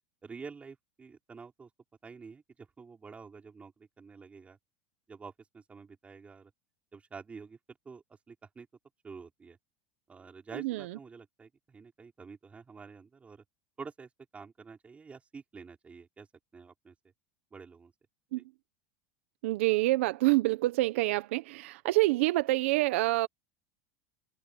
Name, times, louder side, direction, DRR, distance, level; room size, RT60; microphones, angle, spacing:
voice 1, 0.2-1.7 2.0-4.6 5.1-6.5 6.9-7.6 7.9-8.7 9.0-9.6 10.1-13.4 13.8-16.3 16.5-16.9 17.5-17.9 18.3-18.4, right 5 dB, 20° right, 5.3 m, -48 dB
voice 2, 10.5-10.8 18.3-18.4 19.4-23.3, right 19 dB, 75° right, 1.2 m, -27 dB
supercardioid pair, 120°, 7 cm